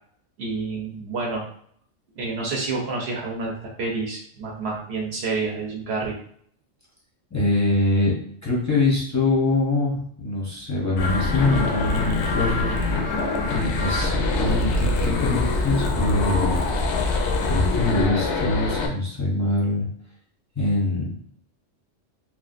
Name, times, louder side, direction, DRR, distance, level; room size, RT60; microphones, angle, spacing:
voice 1, 0.4-1.4 2.2-6.2, right 3 dB, 65° right, -1 dB, 0.8 m, -29 dB
voice 2, 7.3-12.7 13.0-13.2 13.5-16.6 17.5-19.9 20.6-21.1, left 2 dB, 20° left, -5 dB, 0.5 m, -24 dB
sound 1, 11.0-18.9, left 3 dB, 70° left, 0.8 m, -24 dB
3.1 x 2.4 x 2.4 m, 0.63 s
omnidirectional pair, 1.3 m